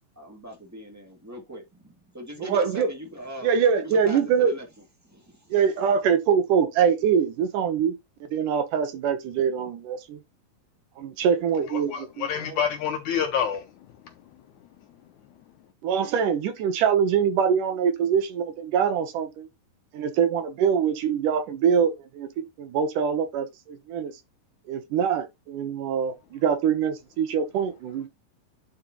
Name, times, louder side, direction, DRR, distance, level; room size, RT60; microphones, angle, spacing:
voice 1, 0.1-3.5 3.8-4.7 5.0-5.9, equal, 10° right, 1.2 m, -40 dB
voice 2, 2.5-2.9 3.4-4.5 5.5-7.9 8.2-10.2 11.0-12.6 15.8-19.5 19.9-24.1 24.7-28.1, right 7 dB, 70° right, 2.4 m, -24 dB
voice 3, 11.7-13.6, left 8 dB, 75° left, 1.9 m, -27 dB
10.5 x 5.0 x 2.9 m
omnidirectional pair, 4.2 m